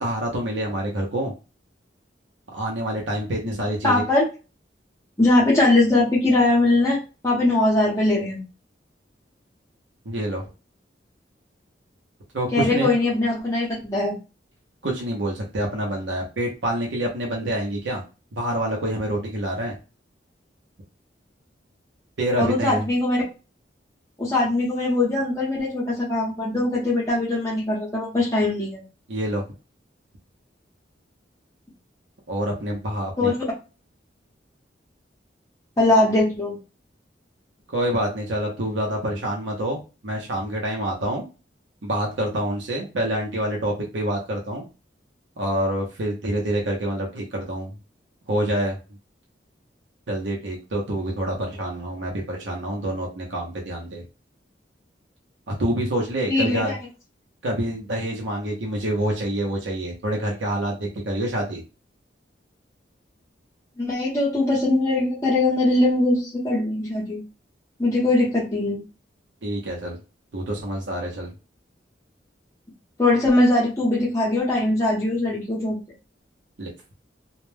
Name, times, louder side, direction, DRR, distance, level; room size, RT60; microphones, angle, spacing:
voice 1, 0.0-1.3 2.5-4.0 10.1-10.4 12.3-12.9 14.8-18.0 18.3-19.7 22.2-22.8 29.1-29.4 32.3-33.3 37.7-41.3 41.8-44.7 45.4-47.7 48.3-48.8 50.1-54.0 55.5-56.7 57.4-61.6 69.4-70.0 70.3-71.3 76.6-76.7, right 1 dB, 85° right, -1 dB, 0.7 m, -27 dB
voice 2, 3.8-4.2 5.2-8.4 12.5-14.2 22.4-23.2 24.2-28.8 33.2-33.4 35.8-36.6 56.3-56.8 63.8-67.2 67.8-68.8 73.0-75.8, left 2 dB, 20° left, -7 dB, 0.7 m, -21 dB
2.2 x 2.1 x 3.2 m, 0.31 s
head